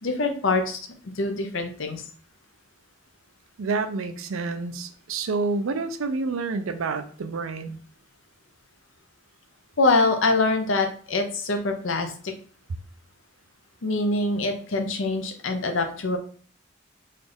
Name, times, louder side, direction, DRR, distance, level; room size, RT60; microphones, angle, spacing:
voice 1, 0.0-2.0 9.8-12.3 13.8-16.2, left 3 dB, 75° left, 5 dB, 0.7 m, -24 dB
voice 2, 3.6-7.8, right 4 dB, 90° right, 10 dB, 0.5 m, -28 dB
4.1 x 2.4 x 3.4 m, 0.44 s
head